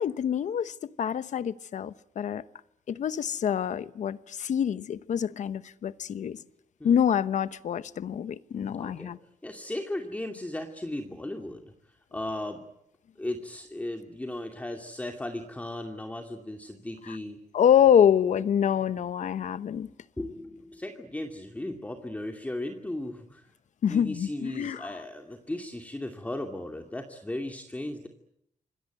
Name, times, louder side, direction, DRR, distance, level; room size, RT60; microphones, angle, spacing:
voice 1, 0.0-2.4 2.9-6.4 6.8-9.2 17.0-17.2 17.5-19.9 23.8-24.9, left 9 dB, 70° left, 1.0 m, -26 dB
voice 2, 8.8-9.1 9.4-11.6 12.1-12.6 13.2-17.4 20.2-23.5 23.9-28.1, left 1 dB, 10° left, 2.5 m, -36 dB
27.0 x 22.0 x 9.3 m
cardioid pair, 120°, 13 cm